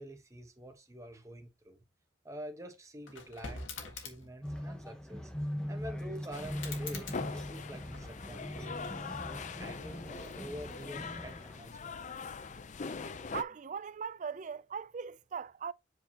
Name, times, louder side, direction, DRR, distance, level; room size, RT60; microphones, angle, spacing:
voice 1, 0.0-1.8 2.2-5.3 5.7-12.1, equal, 15° right, 1.1 m, -47 dB
sound 1, 3.0-4.4 6.5-8.3 8.8-9.5, left 4 dB, 90° left, 1.7 m, -46 dB
sound 2, 4.4-11.6, equal, 5° left, 1.0 m, -41 dB
sound 3, 6.3-13.4, left 4 dB, 40° left, 0.5 m, -42 dB
voice 2, 13.3-15.7, right 6 dB, 40° right, 0.4 m, -39 dB
7.7 x 4.8 x 2.8 m
head